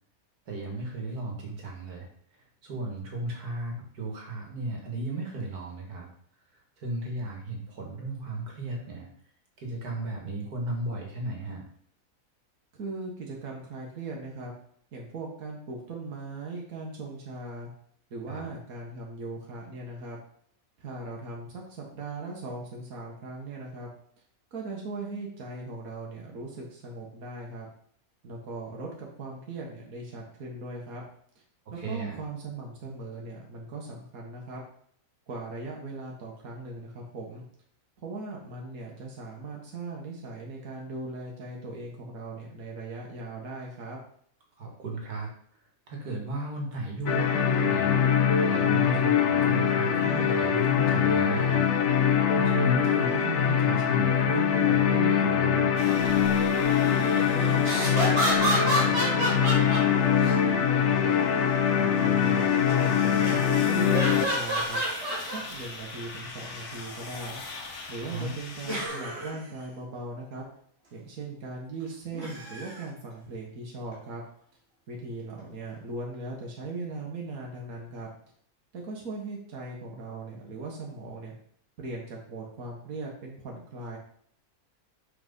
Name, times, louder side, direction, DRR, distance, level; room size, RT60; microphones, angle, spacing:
voice 1, 0.5-2.1 2.6-6.1 6.8-9.1 9.6-11.6 18.3-18.4 31.8-32.2 44.6-45.3 45.9-51.6 52.3-55.7 68.1-68.3, right 2 dB, 80° right, 0 dB, 2.1 m, -35 dB
voice 2, 12.8-14.5 14.9-17.7 18.1-20.2 20.8-23.9 24.5-27.7 28.2-31.0 31.3-31.4 31.7-34.6 35.3-37.4 38.0-44.0 56.9-61.1 61.7-64.8 65.2-67.4 67.9-70.4 70.9-74.2 74.9-78.1 78.7-81.3 81.8-84.0, right 2 dB, 65° right, -1 dB, 1.8 m, -39 dB
sound 1, 47.1-64.3, left 8 dB, 60° left, 0.9 m, -23 dB
sound 2, 55.8-68.9, left 3 dB, 80° left, 1.7 m, -42 dB
sound 3, 57.6-60.4 63.1-63.5 63.9-65.4 66.1-66.2 68.6-69.4 72.1-72.8 73.9-74.0, right 1 dB, 45° right, 2.3 m, -29 dB
5.9 x 4.8 x 5.4 m, 0.63 s
omnidirectional pair, 1.6 m